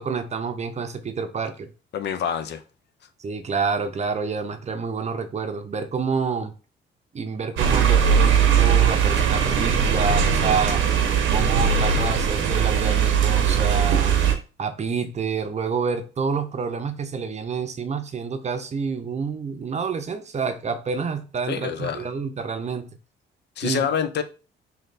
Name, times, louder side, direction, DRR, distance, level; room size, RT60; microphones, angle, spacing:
voice 1, 0.0-1.7 3.2-6.5 7.1-10.8 11.3-14.2 14.6-22.9 23.6-23.8, right 5 dB, 35° right, 0.6 m, -28 dB
voice 2, 1.9-2.6 21.5-22.1 23.6-24.2, left 8 dB, 60° left, 0.5 m, -26 dB
sound 1, 7.6-14.3, right 7 dB, 80° right, 0.7 m, -20 dB
3.2 x 2.8 x 3.9 m
cardioid pair, 90°, 20 cm